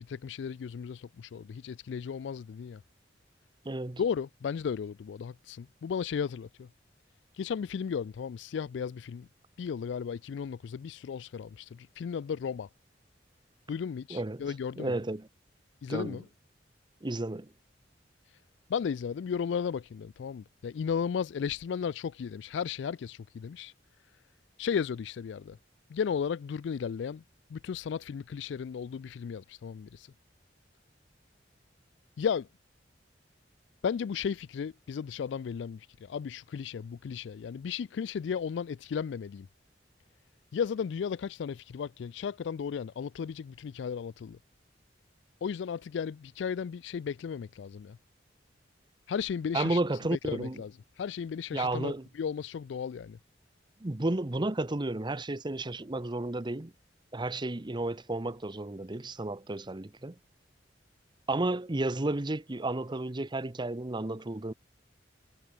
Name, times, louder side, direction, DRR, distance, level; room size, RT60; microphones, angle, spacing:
voice 1, 0.0-2.8 4.0-6.7 7.4-9.3 9.6-12.7 13.7-15.0 15.8-16.2 18.7-23.7 24.6-25.6 25.9-27.2 27.5-30.1 32.2-32.5 33.8-39.5 40.5-44.4 45.4-48.0 49.1-49.8 50.1-50.7 51.0-53.2, left 7 dB, 70° left, 0.3 m, -35 dB
voice 2, 3.6-4.0 14.1-14.4 14.8-15.3 15.9-16.2 17.0-17.5 49.5-50.6 51.5-52.1 53.8-56.7 57.1-60.1 61.3-64.5, right 2 dB, 25° right, 0.9 m, -32 dB
head